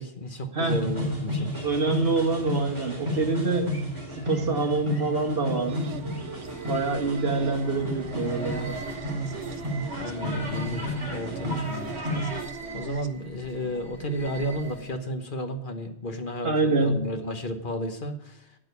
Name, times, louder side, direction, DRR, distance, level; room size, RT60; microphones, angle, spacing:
voice 1, 0.0-1.5 10.0-12.2 12.7-18.4, equal, 50° left, 6 dB, 1.3 m, -33 dB
voice 2, 0.5-0.8 1.6-3.7 4.2-5.9 6.7-8.8 16.4-17.0, right 3 dB, 60° right, 3 dB, 1.9 m, -26 dB
sound 1, 0.7-12.4, equal, 25° right, 3.2 m, -32 dB
sound 2, 5.3-15.1, right 1 dB, 85° left, 2.3 m, -44 dB
sound 3, 5.7-13.1, right 5 dB, 85° right, 1.0 m, -40 dB
9.0 x 8.7 x 8.2 m, 0.76 s
omnidirectional pair, 1.1 m